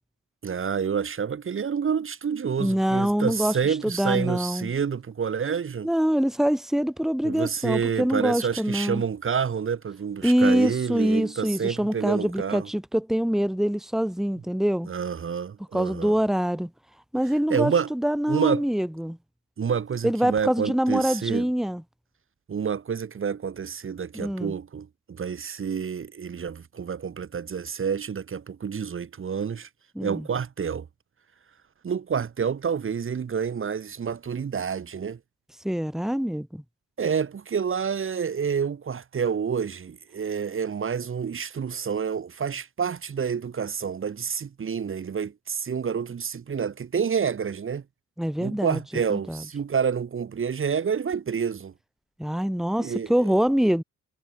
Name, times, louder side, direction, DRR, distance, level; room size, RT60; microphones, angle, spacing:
voice 1, 0.4-5.9 7.2-12.7 14.9-16.2 17.5-17.9 18.3-18.7 19.6-21.5 22.5-29.7 30.0-30.9 31.8-35.2 37.0-47.8 48.4-51.7 52.8-53.3, right 7 dB, 45° right, 2.9 m, -28 dB
voice 2, 2.6-4.7 5.8-9.0 10.2-14.9 15.7-16.7 17.1-19.2 20.0-21.8 24.1-24.5 30.0-30.3 35.6-36.6 48.2-48.8 49.1-49.4 52.2-53.8, equal, ahead, 2.5 m, -25 dB
cardioid pair, 90°, 30 cm